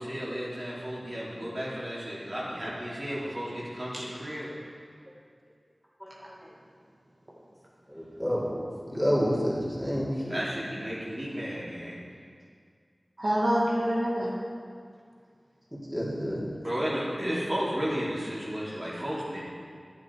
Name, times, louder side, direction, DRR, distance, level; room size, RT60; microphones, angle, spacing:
voice 1, 0.0-4.5 10.3-12.0 16.6-19.4, equal, 45° right, -7 dB, 3.3 m, -33 dB
voice 2, 6.0-6.3 7.9-10.4 15.9-16.5 19.0-19.1, equal, ahead, -7 dB, 3.3 m, -29 dB
voice 3, 13.2-14.4 17.2-17.6 19.0-19.1, equal, 70° right, -6 dB, 2.0 m, -27 dB
11.0 x 9.3 x 4.8 m, 2.1 s
wide cardioid pair, 40°, 0 cm